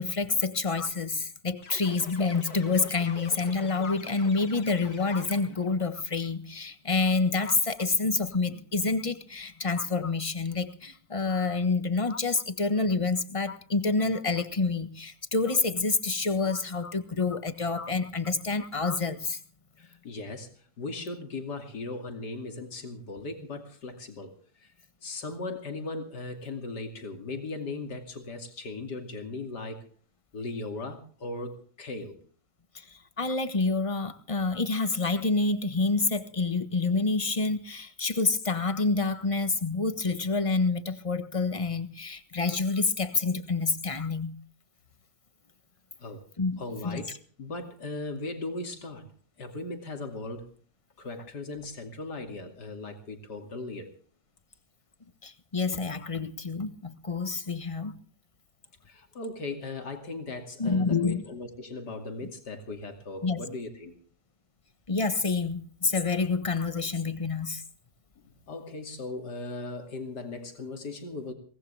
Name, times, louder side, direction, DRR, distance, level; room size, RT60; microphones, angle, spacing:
voice 1, 0.0-19.4 32.7-44.3 46.4-47.2 55.2-57.9 60.6-61.2 62.2-62.3 63.2-63.4 64.9-67.6, left 3 dB, 20° left, 1.3 m, -28 dB
sound 1, 1.6-5.8, left 4 dB, 65° left, 2.7 m, -46 dB
voice 2, 19.8-20.5 20.8-24.7 25.0-29.8 30.3-32.2 46.0-46.2 46.6-47.1 47.4-49.1 49.4-50.5 51.0-53.9 58.9-64.0 68.5-71.3, left 2 dB, 80° left, 3.2 m, -38 dB
23.5 x 18.0 x 3.4 m
omnidirectional pair, 1.7 m